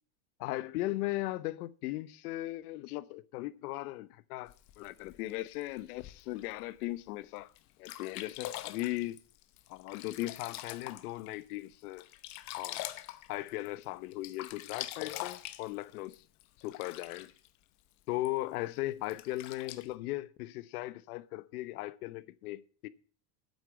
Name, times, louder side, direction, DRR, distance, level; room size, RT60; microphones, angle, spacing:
voice 1, 0.4-7.5 7.8-9.2 9.7-12.1 12.6-12.8 13.3-16.2 16.6-17.3 18.1-22.9, left 17 dB, 70° left, 1.0 m, -38 dB
Sink (filling or washing), 4.5-6.5 7.1-7.2 7.6-7.7 7.8-11.4 11.7-13.8 14.1-17.5 18.2-18.3 19.0-19.9, left 15 dB, 40° left, 0.9 m, -43 dB
9.1 x 8.2 x 9.0 m
supercardioid pair, 165°, 46 cm